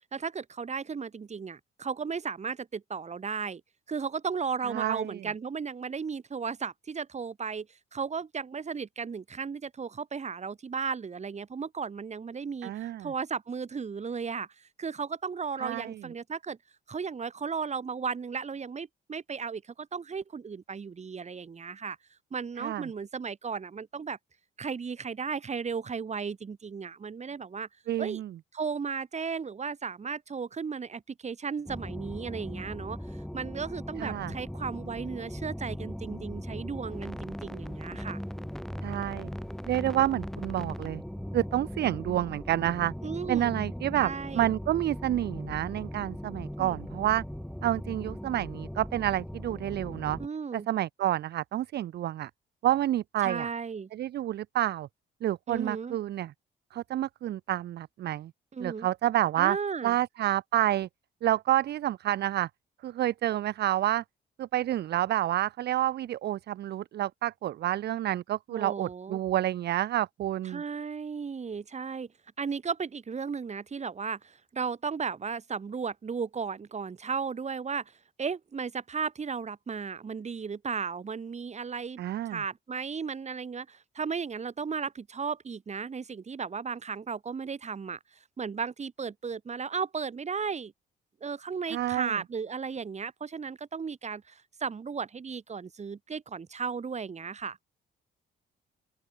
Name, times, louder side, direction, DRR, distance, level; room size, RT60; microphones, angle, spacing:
voice 1, 0.1-3.6 3.9-16.6 16.9-22.0 22.3-24.2 24.6-27.7 28.0-28.2 28.5-38.2 43.0-43.5 44.0-44.5 46.6-46.8 50.2-50.7 53.2-53.9 55.5-56.0 58.5-58.9 59.4-59.9 68.5-69.2 70.4-72.1 72.4-77.9 78.2-82.0 82.3-88.0 88.4-90.7 91.2-97.6, right 5 dB, 35° right, 1.7 m, -35 dB
voice 2, 4.7-5.2 12.6-13.1 15.6-16.0 22.6-22.9 27.9-28.3 34.0-34.3 38.8-39.3 39.7-41.0 41.3-42.9 43.3-47.2 47.6-50.2 50.5-52.3 52.6-53.5 53.9-54.9 55.2-56.3 56.7-58.3 58.6-59.6 59.8-60.9 61.2-62.5 62.8-64.0 64.4-70.6 82.0-82.4 91.7-92.2, right 13 dB, 55° right, 0.5 m, -29 dB
sound 1, 31.7-50.3, equal, ahead, 1.0 m, -39 dB
open air
cardioid pair, 90°, 20 cm